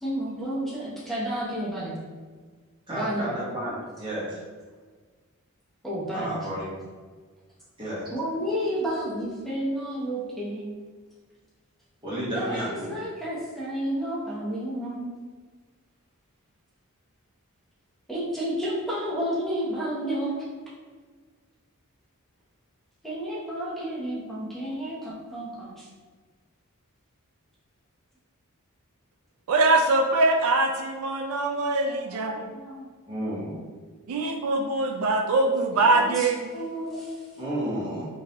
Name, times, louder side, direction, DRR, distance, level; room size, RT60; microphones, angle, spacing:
voice 1, 0.0-1.9 2.9-3.3 5.8-6.3 8.1-10.7 12.3-15.1 18.1-20.4 23.0-25.9 31.9-32.9 35.7-37.3, equal, ahead, -8 dB, 0.8 m, -31 dB
voice 2, 2.9-4.4 6.1-6.7 7.8-8.1 12.0-12.9 33.1-33.6 37.4-38.1, right 1 dB, 20° right, -8 dB, 1.2 m, -31 dB
voice 3, 29.5-32.5 34.1-36.4, right 2 dB, 75° right, 3 dB, 0.3 m, -23 dB
3.7 x 2.7 x 2.9 m, 1.5 s
head